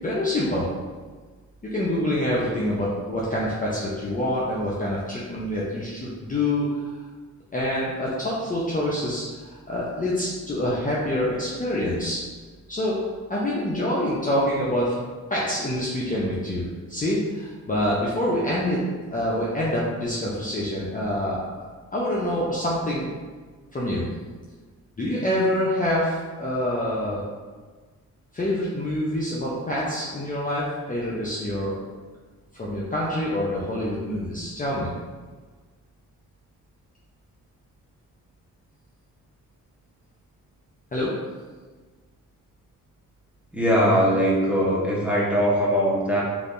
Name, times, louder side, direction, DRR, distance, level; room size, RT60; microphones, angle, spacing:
voice 1, 0.0-0.6 1.7-6.9 7.5-12.2 12.7-13.0 13.3-15.0 15.3-18.8 19.1-21.7 21.9-23.1 23.7-24.1 25.0-27.3 28.3-31.8 32.5-34.9 40.9-41.1, left 1 dB, 25° left, -6 dB, 0.6 m, -26 dB
voice 2, 43.5-46.2, equal, 5° right, -6 dB, 0.9 m, -21 dB
3.3 x 2.6 x 2.5 m, 1.4 s
cardioid pair, 70°, 35 cm